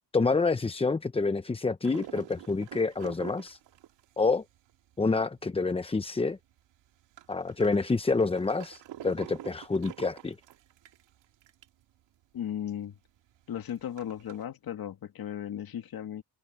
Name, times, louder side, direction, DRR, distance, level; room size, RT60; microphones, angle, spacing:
voice 1, 0.1-3.6 4.2-4.4 5.0-6.4 7.3-10.4, left 3 dB, 15° left, 0.7 m, -28 dB
sound 1, 1.8-5.8 6.2-6.3 6.5-11.8 12.2-12.3 12.5-12.6 13.2-14.4, right 12 dB, 90° right, 2.5 m, -47 dB
voice 2, 12.3-12.9 13.5-16.2, left 10 dB, 60° left, 2.3 m, -36 dB
cardioid pair, 110°, 42 cm